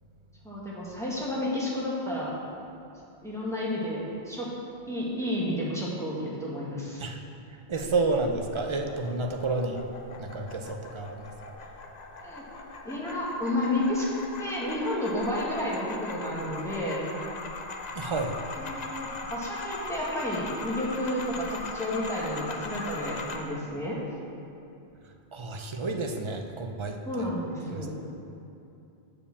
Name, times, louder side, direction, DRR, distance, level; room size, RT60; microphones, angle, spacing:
voice 1, 0.4-2.4 3.2-4.5 4.9-7.0 7.8-7.9 12.2-12.4 12.8-14.1 14.4-17.0 18.6-24.0 27.0-27.9, left 1 dB, 5° left, -6 dB, 1.4 m, -31 dB
voice 2, 7.5-9.8 10.2-11.3 17.9-18.4 25.3-27.3 27.7-27.9, right 3 dB, 40° right, 3 dB, 0.4 m, -30 dB
sound 1, 7.7-23.4, left 3 dB, 45° left, 0.7 m, -40 dB
7.0 x 4.9 x 7.0 m, 2.7 s
omnidirectional pair, 1.2 m